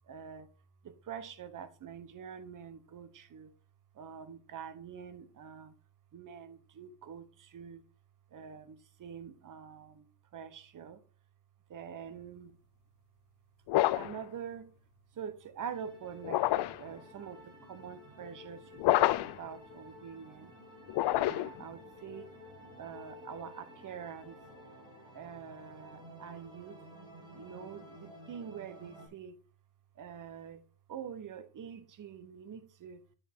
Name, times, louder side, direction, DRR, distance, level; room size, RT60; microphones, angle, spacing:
voice 1, 0.1-0.5 0.8-3.5 3.9-5.7 6.1-7.8 8.3-11.0 11.7-12.5 13.9-14.7 15.1-16.5 16.8-20.5 21.1-22.3 22.8-24.4 25.1-26.8 27.3-29.4 30.0-33.0, right 7 dB, 40° right, 1.1 m, -45 dB
sound 1, 13.7-14.2 16.2-16.9 18.8-19.4 20.9-21.6, left 16 dB, 55° left, 0.6 m, -28 dB
sound 2, 15.7-29.1, equal, 10° right, 5.5 m, -52 dB
10.0 x 6.7 x 3.6 m
cardioid pair, 125°, 50 cm